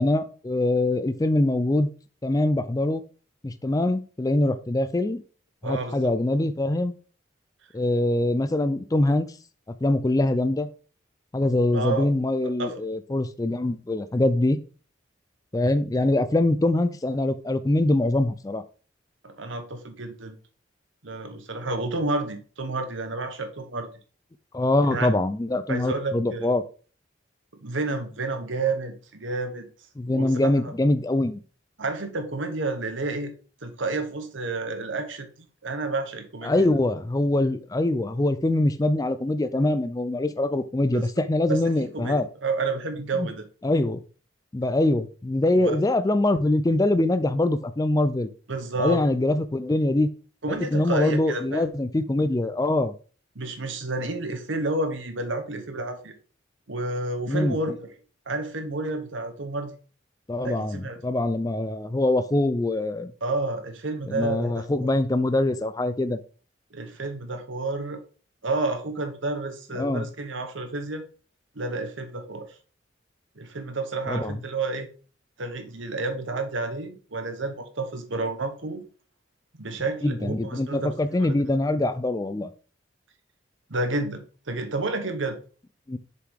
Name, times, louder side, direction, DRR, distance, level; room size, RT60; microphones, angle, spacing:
voice 1, 0.0-1.9 2.2-3.0 3.4-5.2 5.6-6.9 7.7-9.3 9.8-10.7 11.3-14.6 15.5-18.6 24.5-26.6 30.0-31.4 36.4-42.3 43.2-43.3 43.6-44.0 44.5-48.3 48.8-50.1 50.5-52.9 57.3-57.6 60.3-63.1 64.1-66.2 69.8-70.1 74.1-74.3 80.0-82.5 85.9-86.0, left 2 dB, 20° left, 0.3 m, -23 dB
voice 2, 5.6-6.1 11.7-12.1 12.6-12.7 19.2-20.4 21.0-23.9 24.9-25.1 25.7-26.5 27.6-29.7 30.1-30.3 30.6-30.7 31.8-33.3 33.6-35.3 35.6-36.7 40.9-41.1 41.5-43.4 45.5-45.8 48.5-49.0 50.4-51.7 53.3-56.1 56.7-57.9 58.3-59.7 60.4-61.0 63.2-64.6 66.7-68.0 68.4-71.0 71.6-72.5 73.4-74.9 75.4-78.8 79.6-81.4 83.7-84.2 84.5-85.4, right 2 dB, 80° right, 1.1 m, -30 dB
6.8 x 4.8 x 3.6 m
head